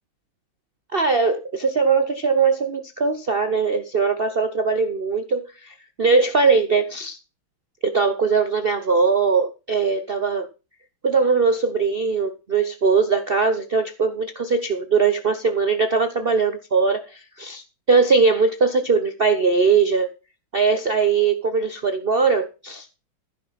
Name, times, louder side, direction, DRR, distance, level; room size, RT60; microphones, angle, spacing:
voice 1, 0.9-7.2 7.8-10.5 11.0-20.1 20.5-22.9, right 4 dB, 60° right, 0.6 m, -20 dB
14.5 x 6.2 x 5.7 m
omnidirectional pair, 2.2 m